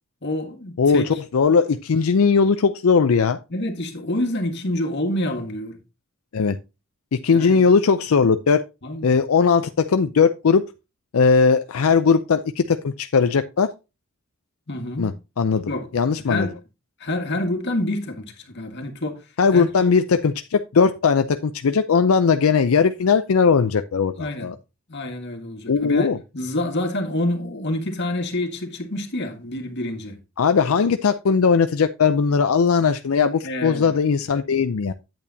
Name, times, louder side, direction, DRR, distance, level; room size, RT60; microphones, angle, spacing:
voice 1, 0.2-1.2 3.5-5.8 7.3-7.7 8.8-9.2 14.7-15.2 15.7-15.9 16.3-16.6 17.0-19.7 24.2-24.5 24.9-30.2 33.4-33.9, left 1 dB, 55° left, 1.8 m, -27 dB
voice 2, 0.8-3.4 6.3-6.6 7.1-8.6 9.0-10.6 11.1-13.7 15.0-15.1 15.4-16.5 19.4-24.6 25.7-26.2 30.4-34.9, left 5 dB, 90° left, 0.5 m, -19 dB
8.8 x 8.4 x 2.7 m
head